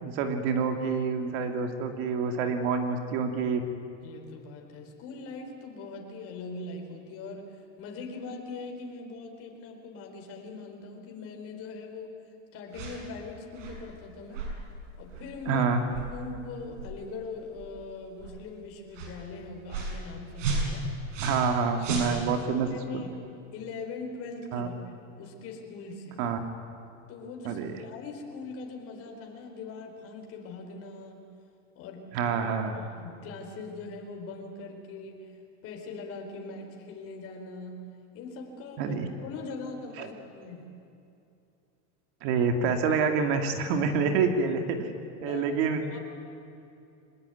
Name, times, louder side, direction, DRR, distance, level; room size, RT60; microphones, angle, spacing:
voice 1, 0.0-3.6 15.5-15.8 21.2-23.0 24.5-24.7 26.2-26.4 27.4-27.7 32.1-32.7 38.8-39.1 40.0-40.1 42.2-44.9 45.2-45.8, right 5 dB, 60° right, 6 dB, 2.6 m, -27 dB
voice 2, 4.0-12.2 12.5-14.5 15.0-15.7 16.0-20.9 22.1-23.1 23.5-26.2 27.1-31.3 31.7-32.4 32.7-35.3 35.6-40.7 45.2-45.5 45.9-46.0, left 3 dB, 40° left, 2 dB, 4.7 m, -41 dB
sound 1, 12.7-13.0 13.5-13.8 14.3-14.5 15.1-15.3 15.9-16.1 16.7-16.9 17.5-17.7 18.2-18.3 18.9-19.1 19.7-20.0 20.4-21.5 21.8-22.5, right 3 dB, 90° right, 7.1 m, -33 dB
25.0 x 20.0 x 9.4 m, 2.6 s
supercardioid pair, 150°, 36 cm